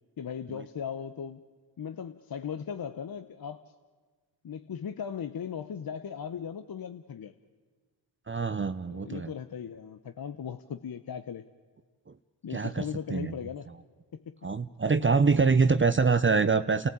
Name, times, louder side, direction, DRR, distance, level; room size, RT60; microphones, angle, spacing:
voice 1, 0.2-1.4 1.8-3.6 4.4-7.3 8.9-11.5 12.4-13.7 14.1-14.3 15.3-15.6, left 7 dB, 50° left, 10 dB, 1.0 m, -38 dB
voice 2, 8.3-9.3 12.5-12.8 13.1-13.3 14.4-16.9, right 4 dB, 25° right, 12 dB, 0.8 m, -24 dB
29.5 x 14.5 x 8.6 m, 1.4 s
supercardioid pair, 45°, 48 cm